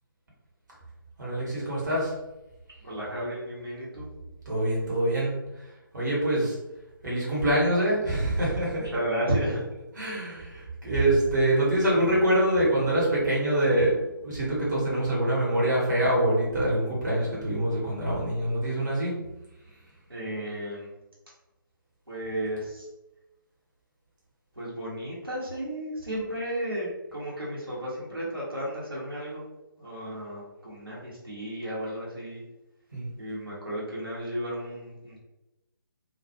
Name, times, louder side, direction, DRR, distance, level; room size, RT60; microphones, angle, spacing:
voice 1, 1.2-2.1 4.5-5.7 5.9-6.6 7.0-8.9 9.9-13.9 14.2-19.1 32.9-33.1, right 1 dB, 55° right, -5 dB, 1.1 m, -25 dB
voice 2, 2.8-4.1 8.7-9.7 20.1-20.9 22.1-22.9 24.6-29.4 29.8-32.4 33.2-35.2, right 1 dB, 85° right, -7 dB, 1.0 m, -33 dB
2.3 x 2.1 x 2.8 m, 0.99 s
figure-of-eight pair, 145°, 12 cm